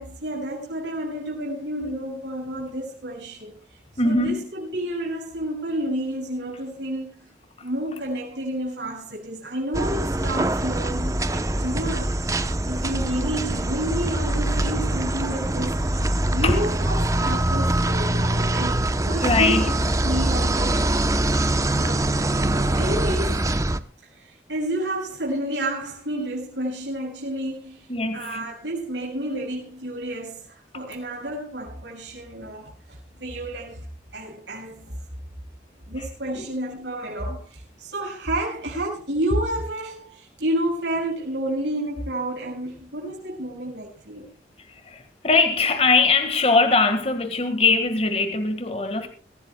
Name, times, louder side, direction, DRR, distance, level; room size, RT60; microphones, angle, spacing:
voice 1, 0.0-3.6 4.0-7.3 7.6-12.2 12.7-16.0 16.3-19.7 20.0-21.0 21.8-23.5 24.1-27.9 28.1-33.9 34.1-35.0 35.9-44.3, right 1 dB, 90° right, 6.5 m, -30 dB
voice 2, 4.0-4.4 16.4-16.6 19.2-19.7 27.9-28.4 36.3-36.5 44.7-49.1, left 3 dB, 35° left, 1.7 m, -21 dB
sound 1, 9.7-23.8, right 1 dB, 20° right, 0.8 m, -23 dB
23.5 x 16.0 x 2.3 m
head